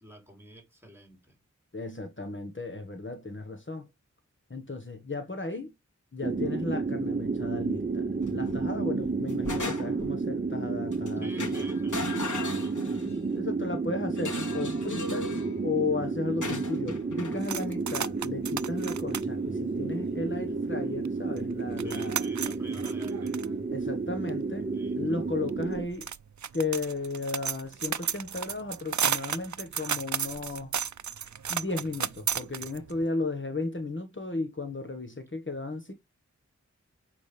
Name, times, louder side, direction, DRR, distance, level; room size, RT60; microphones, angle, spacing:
voice 1, 0.0-1.4 11.2-12.9 21.8-23.4 24.6-25.2, equal, 10° right, 3.3 m, -48 dB
voice 2, 1.7-3.9 4.5-5.7 6.1-11.5 13.3-15.3 15.6-22.2 23.7-24.7 24.9-26.1 26.5-30.7 31.5-35.9, left 3 dB, 40° left, 1.4 m, -34 dB
sound 1, 6.2-25.9, right 4 dB, 30° right, 0.7 m, -31 dB
sound 2, 8.2-8.6 9.0-10.1 10.9-11.1 11.4-13.2 14.1-15.5 16.4-17.4, left 3 dB, 85° left, 3.3 m, -37 dB
sound 3, 17.4-20.6 21.0-21.1 21.4-33.0, right 7 dB, 70° right, 0.5 m, -34 dB
8.0 x 5.1 x 3.4 m
wide cardioid pair, 55°, 30 cm